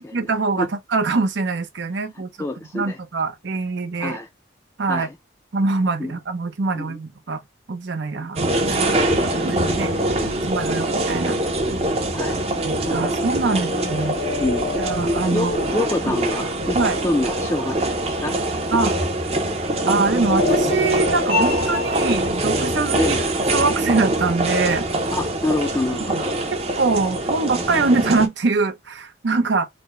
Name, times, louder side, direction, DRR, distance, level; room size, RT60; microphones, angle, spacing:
voice 1, 0.1-2.3 2.7-4.2 4.8-5.1 5.5-7.4 7.7-8.6 9.2-9.9 10.4-11.4 12.6-14.2 14.8-15.5 16.1-16.2 16.7-17.0 18.7-18.9 19.9-23.2 23.5-24.9 26.1-26.2 26.8-29.7, right 3 dB, 80° right, 0.7 m, -23 dB
voice 2, 2.1-3.0 4.0-4.3 4.9-5.1 6.0-6.2 6.7-7.0 9.8-10.2 12.1-12.4 13.5-13.7 14.4-14.9 15.3-18.4 23.0-23.2 25.1-26.3, left 2 dB, 15° left, 0.4 m, -27 dB
sound 1, 8.4-28.3, right 1 dB, 35° right, 0.6 m, -23 dB
sound 2, 8.5-10.7 12.4-16.6 19.9-21.5 24.2-24.7, left 4 dB, 70° left, 0.6 m, -32 dB
4.0 x 2.1 x 3.1 m
head